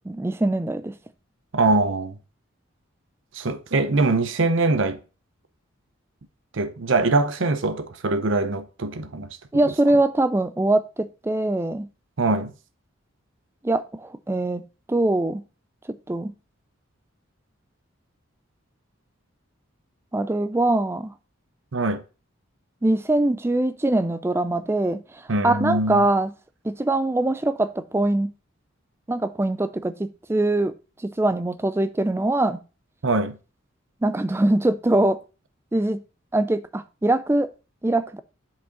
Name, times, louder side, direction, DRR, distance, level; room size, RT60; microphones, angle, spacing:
voice 1, 0.1-0.9 9.5-11.9 13.6-14.6 14.9-15.4 15.9-16.3 20.1-21.1 22.8-26.3 26.6-28.3 29.1-30.7 31.0-32.6 34.0-35.2 35.7-36.0 36.3-37.5 37.8-38.2, right 2 dB, 10° right, 0.3 m, -23 dB
voice 2, 1.5-2.2 3.3-5.0 6.5-9.3 12.2-12.5 21.7-22.0 25.3-26.1 33.0-33.4, right 3 dB, 65° right, 0.7 m, -23 dB
7.4 x 4.9 x 3.9 m
head